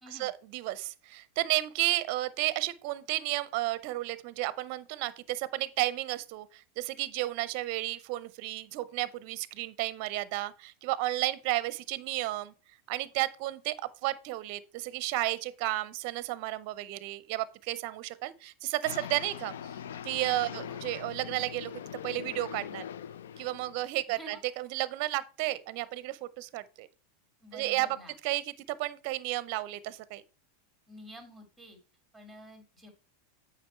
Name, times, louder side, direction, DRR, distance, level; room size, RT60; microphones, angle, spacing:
voice 1, 0.1-12.5 12.9-13.8 14.0-19.5 20.0-21.7 22.0-22.8 23.4-26.9 27.5-27.9 28.2-30.2, right 17 dB, 55° right, 0.6 m, -32 dB
sound 1, 18.8-23.9, left 9 dB, 85° left, 0.5 m, -42 dB
voice 2, 24.1-24.4 27.4-28.1 30.9-31.8 32.1-32.9, equal, ahead, 2.8 m, -49 dB
8.0 x 5.0 x 4.4 m
hypercardioid pair, 120°, 0 cm